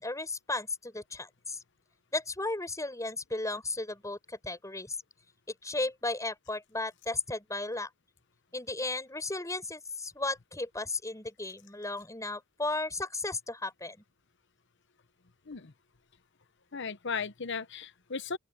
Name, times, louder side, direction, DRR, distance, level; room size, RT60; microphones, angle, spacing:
voice 1, 0.0-1.6 2.1-5.0 5.6-7.9 8.5-14.0, left 2 dB, 15° left, 7.2 m, -35 dB
voice 2, 16.7-18.4, left 5 dB, 60° left, 1.0 m, -36 dB
open air
head